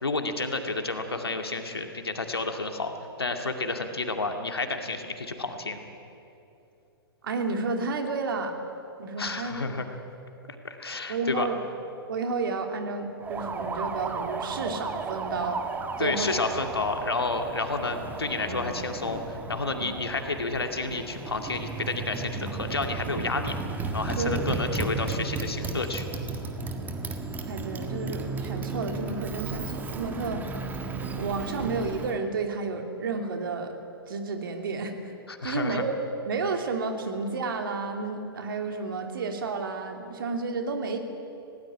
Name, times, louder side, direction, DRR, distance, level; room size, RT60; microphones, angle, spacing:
voice 1, 0.0-2.9 3.2-5.8 9.2-9.9 10.6-11.5 16.0-23.5 23.9-26.1 35.3-35.8, left 3 dB, 80° left, 5 dB, 2.3 m, -30 dB
voice 2, 7.2-8.5 9.0-9.8 11.1-11.6 12.1-15.6 16.0-16.4 18.5-18.6 24.2-24.6 27.5-30.4 31.2-33.8 34.1-35.1 35.4-41.0, right 4 dB, 60° right, 4 dB, 2.7 m, -31 dB
Motorcycle, 13.2-32.2, right 3 dB, 15° right, 1.6 m, -34 dB
19.5 x 17.5 x 9.8 m, 2.8 s
figure-of-eight pair, 115°, 13 cm